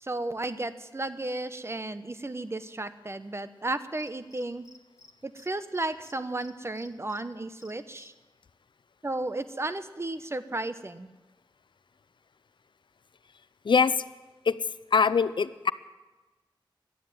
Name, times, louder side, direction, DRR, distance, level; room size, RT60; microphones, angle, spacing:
voice 1, 0.0-4.6 5.2-8.1 9.0-11.1, right 2 dB, 30° right, 12 dB, 0.8 m, -34 dB
Cricket, 4.0-5.1 5.4-5.5 5.7-7.2 7.6-8.1, left 3 dB, 40° left, 1.3 m, -53 dB
voice 2, 13.6-14.0 14.4-14.6 14.9-15.7, left 5 dB, 70° left, 16 dB, 0.5 m, -23 dB
12.0 x 9.5 x 9.4 m, 1.2 s
wide cardioid pair, 60°, 9 cm